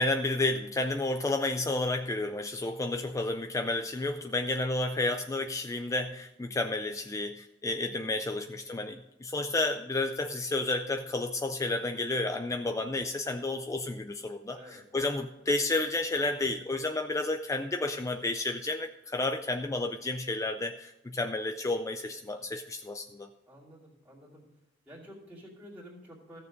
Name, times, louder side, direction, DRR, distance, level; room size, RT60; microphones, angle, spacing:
voice 1, 0.0-23.3, left 2 dB, 15° left, 7 dB, 0.4 m, -31 dB
voice 2, 14.5-14.9 23.5-24.4 24.9-26.4, equal, 10° right, -8 dB, 2.6 m, -50 dB
14.5 x 6.8 x 5.2 m, 0.97 s
head